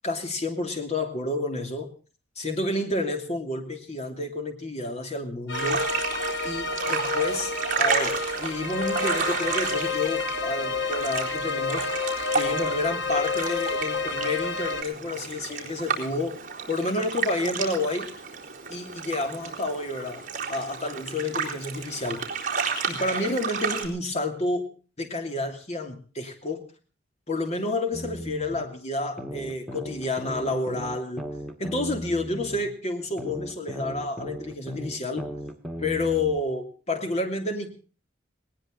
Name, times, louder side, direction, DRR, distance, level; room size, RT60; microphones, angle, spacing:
voice 1, 0.0-1.9 2.4-5.9 6.4-11.9 12.3-16.4 16.7-18.1 18.7-20.2 20.5-22.2 22.9-24.7 25.0-26.6 27.3-31.3 31.6-35.3 35.8-37.7, left 2 dB, 35° left, 5 dB, 2.8 m, -29 dB
sound 1, 5.5-14.8, left 3 dB, 65° left, 1.7 m, -29 dB
sound 2, 5.5-23.9, right 5 dB, 45° right, 3.9 m, -32 dB
sound 3, 27.9-28.7 29.2-32.7 33.2-36.4, equal, ahead, 2.0 m, -37 dB
19.5 x 19.0 x 3.9 m, 0.37 s
head